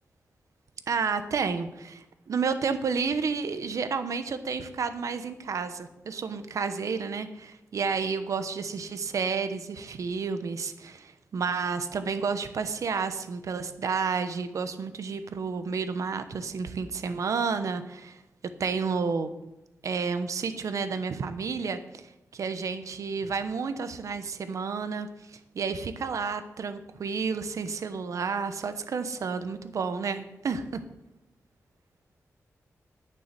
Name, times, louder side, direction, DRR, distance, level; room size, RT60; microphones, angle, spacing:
voice 1, 0.9-18.2 18.6-19.3 19.8-22.0 22.3-30.9, right 5 dB, 70° right, 10 dB, 1.0 m, -31 dB
9.2 x 7.0 x 7.9 m, 0.90 s
wide cardioid pair, 95°, 6 cm